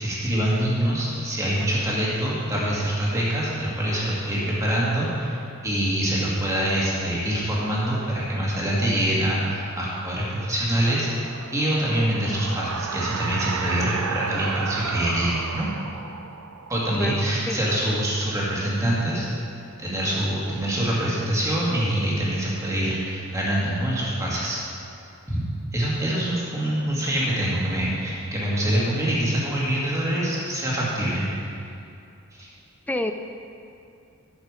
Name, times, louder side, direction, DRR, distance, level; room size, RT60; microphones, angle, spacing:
voice 1, 0.0-5.4 5.6-15.7 16.7-19.3 19.8-24.6 25.3-25.4 25.7-31.3 32.4-32.5, right 1 dB, 15° right, -6 dB, 1.9 m, -25 dB
sound 1, 9.4-18.1, right 6 dB, 90° right, 0.5 m, -34 dB
voice 2, 17.0-17.6 32.9-33.1, left 1 dB, 5° left, 6 dB, 0.3 m, -28 dB
11.5 x 6.5 x 5.0 m, 2.6 s
head